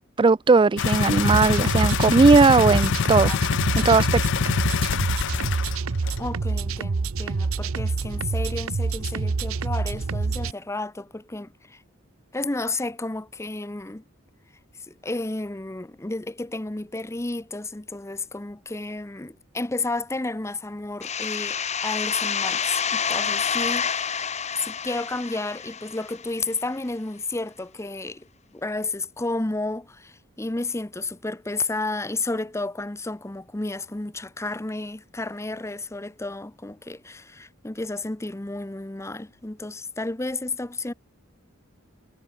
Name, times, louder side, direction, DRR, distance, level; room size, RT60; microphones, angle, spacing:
voice 1, 0.2-3.3 3.8-4.2, right 4 dB, 25° right, 0.3 m, -18 dB
sound 1, 0.8-5.8 6.1-6.2, left 6 dB, 60° left, 0.5 m, -24 dB
sound 2, 1.2-10.5, right 4 dB, 90° right, 0.7 m, -27 dB
voice 2, 6.2-11.8 12.3-14.0 14.8-24.1 24.6-28.3 28.5-40.9, left 2 dB, 15° left, 0.7 m, -32 dB
sound 3, 21.0-26.5, left 7 dB, 35° left, 1.7 m, -28 dB
head